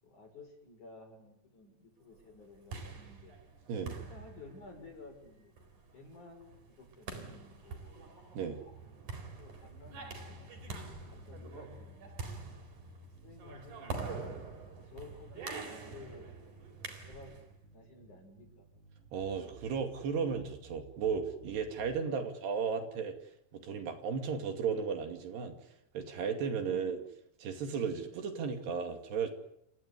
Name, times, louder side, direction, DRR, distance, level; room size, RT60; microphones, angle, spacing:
voice 1, 0.0-3.3 3.9-5.5 5.9-8.0 8.5-10.8 11.1-12.6 13.2-14.3 14.8-17.4 17.7-18.7 21.9-22.3 26.5-26.9 27.9-28.2, left 3 dB, 40° left, 3 dB, 7.8 m, -54 dB
sound 1, 2.4-17.5, right 4 dB, 45° right, 5.3 m, -45 dB
sound 2, 10.1-22.1, right 1 dB, 20° right, 2.3 m, -56 dB
voice 2, 19.1-23.1 23.5-25.6 25.9-27.0 27.4-29.3, right 6 dB, 65° right, 5 dB, 4.4 m, -35 dB
29.0 x 18.0 x 9.8 m, 0.78 s
omnidirectional pair, 5.2 m